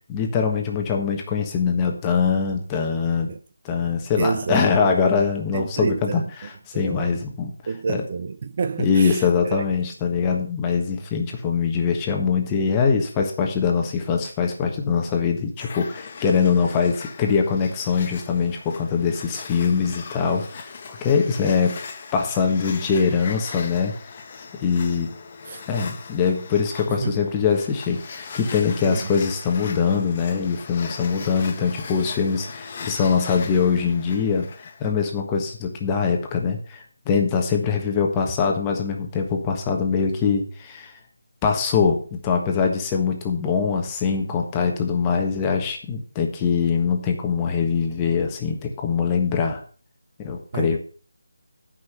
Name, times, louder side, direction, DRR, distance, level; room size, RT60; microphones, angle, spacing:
voice 1, 0.1-3.3 3.6-7.5 7.9-8.0 8.8-21.8 22.1-23.9 24.6-25.1 25.7-41.0 41.4-49.6 50.2-50.8, left 6 dB, 15° left, 1.4 m, -23 dB
voice 2, 4.2-5.0 5.5-7.2 7.6-9.6 25.5-25.6 26.9-27.2 28.9-29.1 50.5-50.8, right 5 dB, 40° right, 0.5 m, -29 dB
sound 1, 15.6-34.9, left 5 dB, 30° left, 1.2 m, -39 dB
9.6 x 5.7 x 6.7 m
figure-of-eight pair, 165°, 0 cm